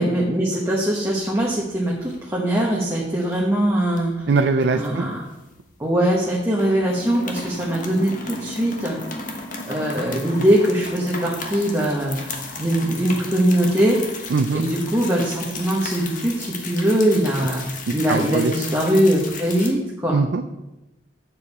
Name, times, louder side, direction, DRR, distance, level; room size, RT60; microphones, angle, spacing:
voice 1, 0.0-4.3 4.7-5.2 5.8-9.0 9.7-12.2 12.6-14.0 14.5-17.6 17.9-20.2, right 1 dB, 15° right, -4 dB, 1.1 m, -21 dB
sound 1, 1.0-1.7 2.0-2.2 2.6-3.4 3.9-5.9 6.1-6.3 6.5-19.7, left 3 dB, 45° left, 1.2 m, -35 dB
voice 2, 4.3-5.1 14.3-14.7 18.1-18.5 20.1-20.5, right 4 dB, 65° right, 6 dB, 0.4 m, -21 dB
8.9 x 7.0 x 4.2 m, 0.99 s
head